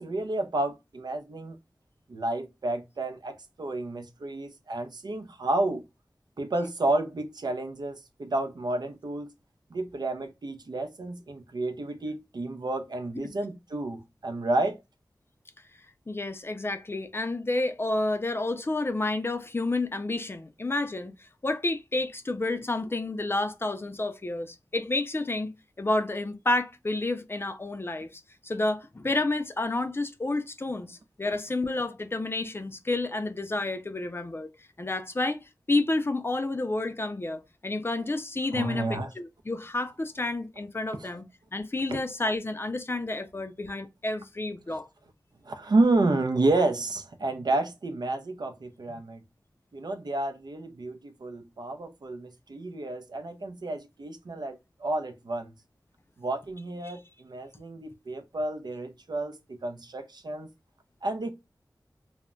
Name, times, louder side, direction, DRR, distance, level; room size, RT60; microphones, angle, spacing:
voice 1, 0.0-1.6 2.1-5.9 6.4-9.3 9.7-14.8 38.5-39.1 41.0-41.1 44.7-44.8 45.4-49.2 49.7-55.5 56.2-60.5 61.0-61.3, right 2 dB, 70° right, 0.5 m, -30 dB
voice 2, 16.1-34.5 34.8-35.4 35.7-41.3 41.5-44.9 56.8-57.0, left 2 dB, 30° left, 0.4 m, -30 dB
2.2 x 2.1 x 3.6 m
wide cardioid pair, 55°, 7 cm